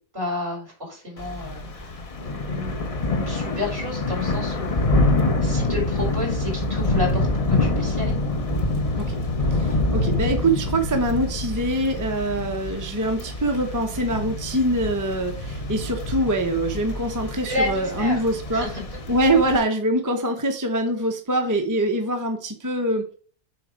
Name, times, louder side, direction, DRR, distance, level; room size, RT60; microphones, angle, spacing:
voice 1, 0.1-8.2 17.4-18.2 18.5-18.8, left 2 dB, 45° right, -2 dB, 4.5 m, -31 dB
Thunder / Rain, 1.2-19.6, left 2 dB, 45° left, 0.4 m, -26 dB
voice 2, 9.5-18.7 19.1-23.1, right 1 dB, 15° right, 4 dB, 0.6 m, -24 dB
6.9 x 4.2 x 5.0 m, 0.42 s
omnidirectional pair, 1.7 m